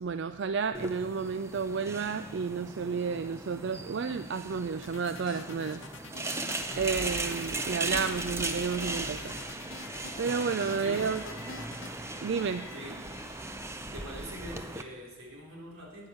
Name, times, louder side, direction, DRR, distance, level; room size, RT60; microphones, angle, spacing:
voice 1, 0.0-5.8 6.8-9.2 10.2-11.2 12.2-12.7, right 5 dB, 60° right, 11 dB, 0.4 m, -31 dB
sound 1, 0.7-14.8, right 2 dB, 15° right, 0.6 m, -38 dB
sound 2, 4.8-11.9, left 4 dB, 65° left, 0.9 m, -46 dB
sound 3, 6.6-13.6, left 1 dB, 10° left, 2.5 m, -48 dB
voice 2, 10.8-11.1 12.7-13.0 13.9-16.1, right 1 dB, 85° right, -1 dB, 3.3 m, -44 dB
9.8 x 8.8 x 7.8 m, 1.3 s
head